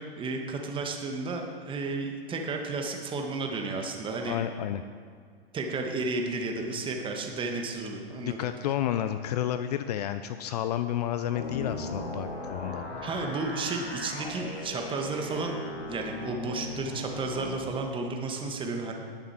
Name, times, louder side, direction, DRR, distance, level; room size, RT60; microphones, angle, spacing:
voice 1, 0.0-4.4 5.5-8.4 13.0-15.5 15.9-18.9, right 3 dB, 15° right, 2 dB, 1.5 m, -32 dB
voice 2, 4.2-4.8 8.2-13.1, left 11 dB, 40° left, 10 dB, 0.5 m, -31 dB
sound 1, 11.3-17.6, left 2 dB, 85° left, 2.0 m, -38 dB
19.0 x 6.8 x 4.4 m, 2.1 s
hypercardioid pair, 115°, 31 cm